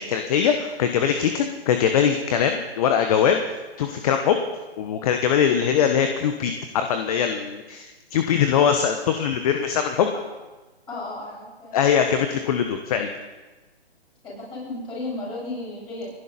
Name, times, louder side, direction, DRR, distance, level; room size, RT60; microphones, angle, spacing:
voice 1, 0.0-3.4 3.8-4.4 4.8-10.1 11.7-13.1, left 8 dB, 35° left, 6 dB, 1.1 m, -22 dB
voice 2, 10.9-11.8 14.2-16.1, left 2 dB, 15° left, -6 dB, 7.9 m, -34 dB
30.0 x 11.5 x 4.3 m, 1.2 s
hypercardioid pair, 140°, 32 cm